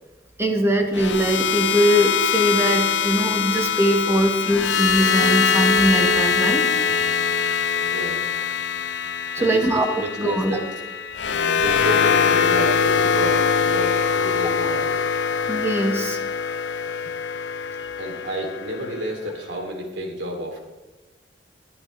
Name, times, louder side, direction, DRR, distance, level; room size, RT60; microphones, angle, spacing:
voice 1, 0.4-6.7 9.3-9.9 10.2-10.6 15.5-16.2, equal, 15° right, 3 dB, 1.5 m, -21 dB
sound 1, 0.9-19.1, left 6 dB, 75° left, 0.7 m, -22 dB
voice 2, 7.9-8.3 9.3-10.7 11.2-15.0 18.0-20.6, right 1 dB, 75° right, 2 dB, 2.9 m, -31 dB
20.0 x 12.0 x 3.2 m, 1.1 s
head